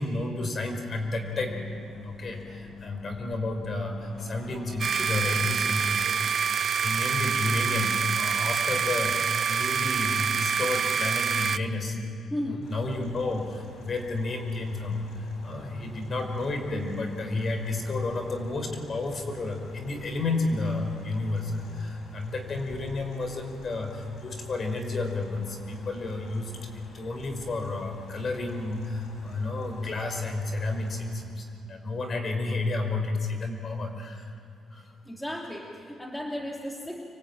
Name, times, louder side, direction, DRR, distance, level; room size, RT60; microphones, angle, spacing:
voice 1, 0.0-1.6 1.9-12.0 12.6-15.0 15.4-34.3 34.7-34.8, left 2 dB, 45° left, 4 dB, 5.2 m, -31 dB
Bus, 1.0-6.0, left 4 dB, 60° left, 2.3 m, -46 dB
sound 1, 4.8-11.6, right 7 dB, 50° right, 0.8 m, -26 dB
voice 2, 12.3-12.6 35.0-37.0, left 1 dB, 5° left, -1 dB, 3.1 m, -34 dB
sound 2, 12.6-31.1, left 2 dB, 80° left, 7.9 m, -49 dB
26.5 x 23.5 x 9.1 m, 2.4 s
cardioid pair, 90°, 0 cm